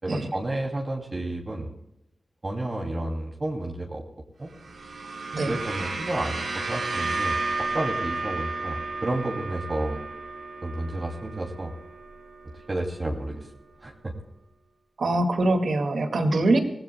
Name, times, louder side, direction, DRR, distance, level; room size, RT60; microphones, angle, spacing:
voice 1, 0.0-1.7 2.4-4.0 4.4-4.5 5.4-10.1 10.6-11.7 12.7-13.5 13.8-14.1, right 1 dB, 35° right, -2 dB, 2.7 m, -31 dB
sound 1, 4.5-12.9, right 3 dB, 90° right, 2.7 m, -33 dB
voice 2, 15.0-16.6, right 2 dB, 75° right, 5 dB, 2.0 m, -23 dB
25.0 x 17.5 x 2.3 m, 0.86 s
wide cardioid pair, 85°, 0 cm